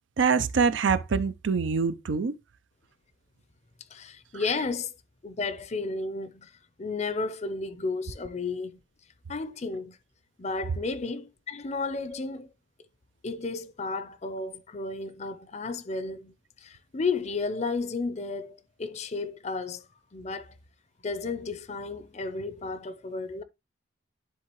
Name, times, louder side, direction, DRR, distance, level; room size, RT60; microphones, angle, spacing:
voice 1, 0.2-2.4, right 5 dB, 70° right, 0.5 m, -24 dB
voice 2, 3.9-4.9 5.2-6.5 6.8-8.8 9.3-10.0 10.4-12.5 13.2-16.3 16.6-19.9 20.1-20.5 21.0-23.4, left 3 dB, 35° left, 0.5 m, -33 dB
10.5 x 3.7 x 3.0 m
head